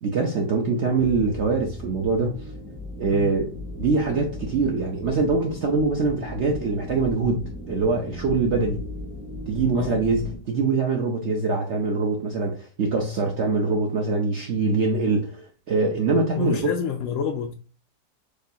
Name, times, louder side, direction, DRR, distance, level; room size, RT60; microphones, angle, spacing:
voice 1, 0.0-2.4 3.0-8.8 9.5-16.7, right 3 dB, 60° right, 0.8 m, -24 dB
sound 1, 1.0-10.4, left 1 dB, 5° left, 0.5 m, -37 dB
voice 2, 16.4-17.6, left 8 dB, 70° left, 0.7 m, -28 dB
6.6 x 2.3 x 2.7 m
omnidirectional pair, 1.8 m